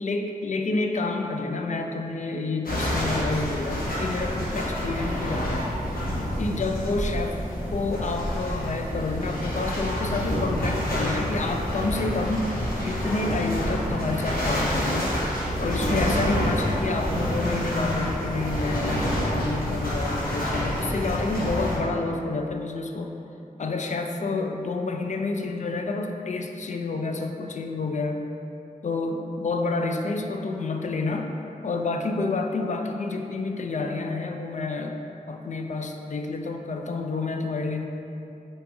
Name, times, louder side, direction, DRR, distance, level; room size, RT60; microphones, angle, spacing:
voice 1, 0.0-5.7 6.4-7.4 7.7-15.2 15.6-23.1 23.6-28.3 28.8-31.4 31.6-35.0 35.3-37.8, left 3 dB, 55° left, 4 dB, 0.4 m, -29 dB
sound 1, 2.6-21.8, equal, 85° left, 1.0 m, -28 dB
5.6 x 3.6 x 2.6 m, 2.8 s
wide cardioid pair, 85°, 15 cm